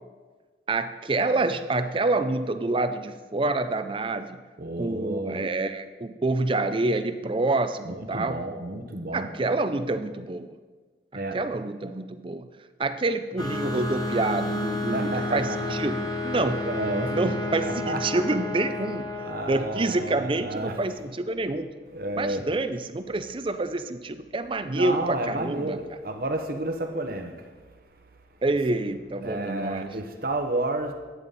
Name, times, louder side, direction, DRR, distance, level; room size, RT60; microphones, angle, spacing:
voice 1, 0.7-4.4 4.8-8.4 9.1-10.5 11.1-12.5 12.8-16.6 17.1-19.1 19.5-21.7 22.2-25.8 28.4-29.9, right 2 dB, 30° right, 10 dB, 0.5 m, -27 dB
voice 2, 4.6-5.4 7.8-9.3 11.1-11.4 14.9-15.8 16.6-18.2 19.1-20.8 21.9-22.5 24.6-28.0 29.2-30.9, right 1 dB, 55° right, 5 dB, 1.1 m, -31 dB
sound 1, 13.4-20.7, left 2 dB, 20° left, 1.1 m, -31 dB
11.5 x 9.1 x 4.1 m, 1.4 s
head